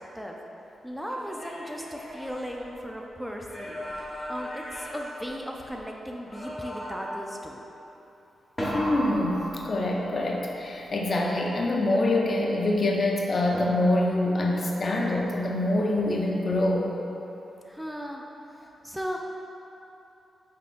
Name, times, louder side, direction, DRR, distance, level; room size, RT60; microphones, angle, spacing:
voice 1, 0.8-7.6 17.7-18.2 18.6-19.2, equal, 5° right, 0 dB, 0.4 m, -37 dB
sound 1, 1.1-3.0 3.4-5.8 6.3-7.2 8.6-10.2 13.5-14.2, equal, 20° left, 1.1 m, -36 dB
voice 2, 8.7-16.9, left 1 dB, 50° left, -1 dB, 0.6 m, -25 dB
5.4 x 3.7 x 2.5 m, 3.0 s
cardioid pair, 65°, 0 cm